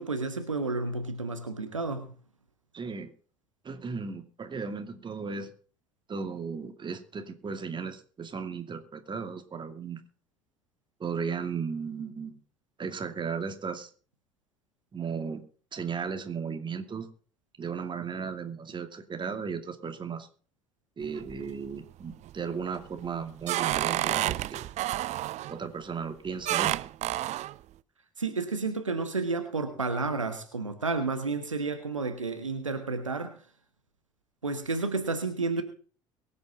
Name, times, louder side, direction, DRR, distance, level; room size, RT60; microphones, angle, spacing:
voice 1, 0.0-2.1 28.2-33.4 34.4-35.6, right 3 dB, 90° right, 8 dB, 1.5 m, -31 dB
voice 2, 2.7-3.1 3.6-5.5 6.1-10.0 11.0-12.4 12.8-13.9 14.9-15.4 15.7-17.1 17.6-20.3 21.0-24.6 25.5-26.8, right 5 dB, 30° right, 7 dB, 2.5 m, -35 dB
sound 1, 21.0-21.7 22.1-22.5 23.0-25.6 26.5-27.6, right 14 dB, 45° right, 0.5 m, -30 dB
23.0 x 8.6 x 3.7 m, 0.40 s
figure-of-eight pair, 60°, 16 cm